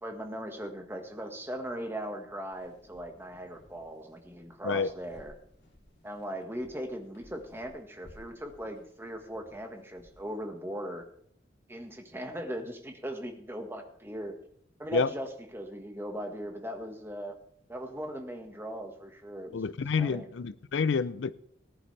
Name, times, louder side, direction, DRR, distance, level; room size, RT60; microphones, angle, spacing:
voice 1, 0.0-5.3 6.0-11.0 11.7-14.4 14.8-15.3 15.5-17.4 17.7-19.6 20.0-20.3, equal, 15° right, 1.5 m, -39 dB
sound 1, 2.5-10.4, equal, 65° left, 3.0 m, -59 dB
voice 2, 19.5-21.3, left 5 dB, 85° left, 0.5 m, -28 dB
19.0 x 10.5 x 3.3 m
head